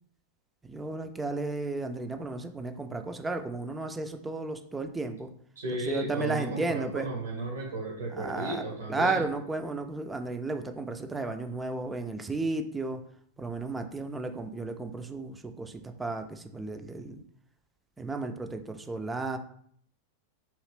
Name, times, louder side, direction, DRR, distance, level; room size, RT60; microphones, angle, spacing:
voice 1, 0.6-5.3 5.7-7.1 8.1-13.0 13.4-17.2 18.0-19.4, right 3 dB, 15° right, 6 dB, 0.4 m, -33 dB
voice 2, 5.6-9.2, right 2 dB, 75° right, -1 dB, 0.9 m, -34 dB
2.9 x 2.5 x 3.3 m, 0.63 s
hypercardioid pair, 100°, 0 cm